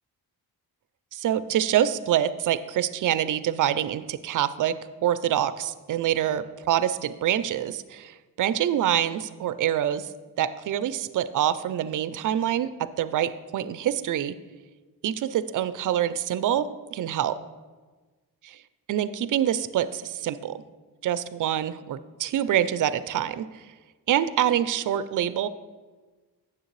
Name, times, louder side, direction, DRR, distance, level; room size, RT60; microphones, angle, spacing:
voice 1, 1.1-4.8 5.0-10.1 10.4-12.7 13.0-14.4 15.0-17.4 18.9-20.6 21.0-23.5 24.1-25.5, right 11 dB, 55° right, 14 dB, 0.4 m, -26 dB
9.0 x 7.3 x 3.1 m, 1.3 s
wide cardioid pair, 125°, 38 cm